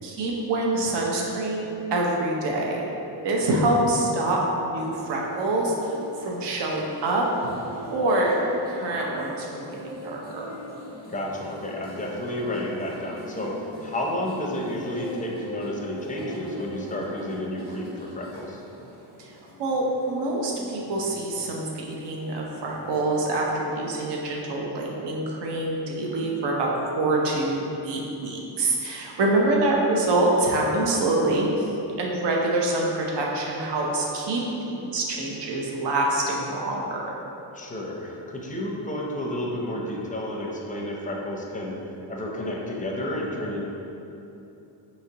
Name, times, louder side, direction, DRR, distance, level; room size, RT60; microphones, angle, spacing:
voice 1, 0.0-2.8 3.2-6.0 6.2-7.3 7.9-10.5 19.2-19.3 19.6-31.7 32.0-37.0, right 2 dB, 70° right, -2 dB, 0.8 m, -25 dB
sound 1, 4.8-23.1, left 1 dB, 20° right, 1.0 m, -42 dB
voice 2, 11.1-13.5 13.8-18.6 29.2-29.3 37.5-41.8 42.1-43.6, left 1 dB, 20° left, -2 dB, 0.5 m, -31 dB
4.8 x 2.9 x 2.8 m, 2.9 s
cardioid pair, 105°, 44 cm